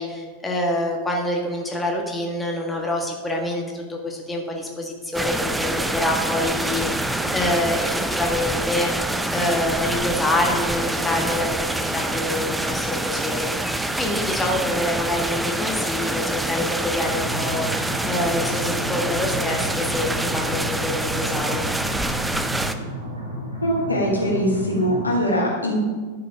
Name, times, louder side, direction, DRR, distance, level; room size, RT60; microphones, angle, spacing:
voice 1, 0.0-17.7 18.0-21.6, left 1 dB, 10° left, 0 dB, 1.6 m, -26 dB
sound 1, 5.1-22.7, right 1 dB, 5° right, 0.6 m, -26 dB
sound 2, 17.0-25.0, equal, 85° right, 3.2 m, -32 dB
voice 2, 23.6-25.8, equal, 80° left, -3 dB, 2.7 m, -22 dB
11.5 x 6.8 x 4.9 m, 1.5 s
figure-of-eight pair, 90°, 0 cm